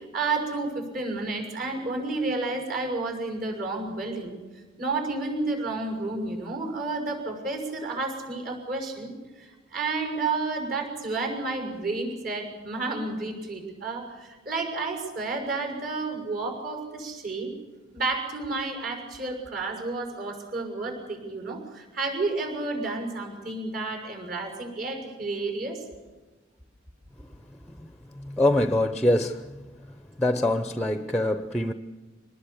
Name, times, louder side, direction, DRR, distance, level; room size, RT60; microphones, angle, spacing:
voice 1, 0.1-4.4 4.8-17.5 17.9-25.8, right 3 dB, 50° right, 6.4 m, -31 dB
voice 2, 27.7-29.7 30.2-31.7, left 1 dB, 5° left, 0.7 m, -25 dB
25.5 x 19.5 x 7.1 m
head